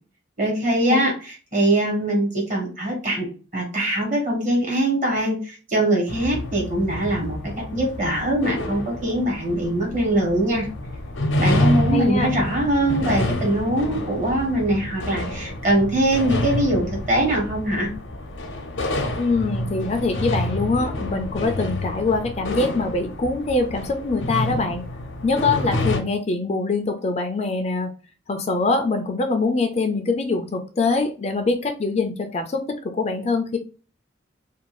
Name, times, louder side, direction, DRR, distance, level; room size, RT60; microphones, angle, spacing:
voice 1, 0.4-10.7 11.4-17.9, right 1 dB, 40° right, -1 dB, 1.2 m, -22 dB
sound 1, 6.1-26.0, left 1 dB, 80° left, 0.6 m, -28 dB
voice 2, 11.9-12.3 19.2-24.8 25.2-27.9 28.3-33.6, left 3 dB, 35° left, 5 dB, 0.4 m, -23 dB
2.6 x 2.3 x 2.9 m, 0.36 s
head